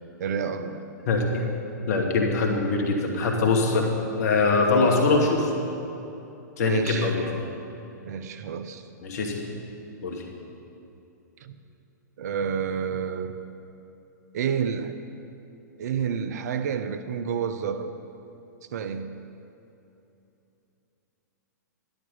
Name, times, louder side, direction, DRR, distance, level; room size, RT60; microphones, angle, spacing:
voice 1, 0.2-0.8 6.6-7.1 8.1-8.8 11.4-11.6 12.2-13.4 14.3-15.0 15.8-17.9 18.7-19.1, right 7 dB, 60° right, 10 dB, 0.8 m, -29 dB
voice 2, 1.1-1.4 1.9-5.5 6.6-7.2 9.0-9.5 10.0-10.2, left 3 dB, 55° left, 1 dB, 2.4 m, -23 dB
12.0 x 11.5 x 5.5 m, 2.9 s
hypercardioid pair, 115°, 10 cm